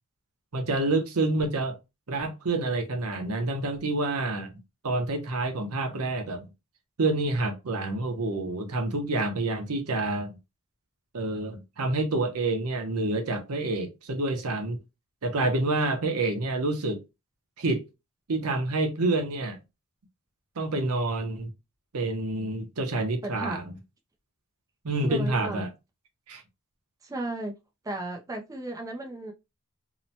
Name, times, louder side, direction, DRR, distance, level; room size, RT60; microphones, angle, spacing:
voice 1, 0.5-1.8 2.1-4.5 4.8-6.5 7.0-10.3 11.1-14.8 15.2-17.0 17.6-17.9 18.3-19.6 20.6-21.5 21.9-23.6 24.8-25.7 26.3-26.4, right 2 dB, 80° right, 0.7 m, -28 dB
voice 2, 23.2-23.6 25.0-25.6 27.0-27.5 27.8-29.3, right 2 dB, 15° right, 0.4 m, -34 dB
2.8 x 2.1 x 2.7 m
head